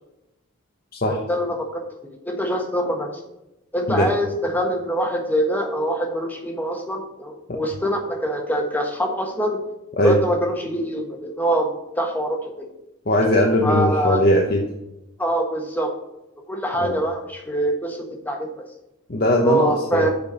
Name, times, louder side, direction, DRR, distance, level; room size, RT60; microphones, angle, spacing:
voice 1, 1.0-3.1 3.7-9.6 10.0-12.7 13.6-14.2 15.2-15.9 16.5-18.6 19.4-20.1, right 1 dB, 10° left, 2 dB, 1.2 m, -24 dB
voice 2, 13.1-14.6 16.8-17.0 19.1-20.1, left 1 dB, 45° left, 0 dB, 0.9 m, -19 dB
8.4 x 4.5 x 6.6 m, 0.90 s
head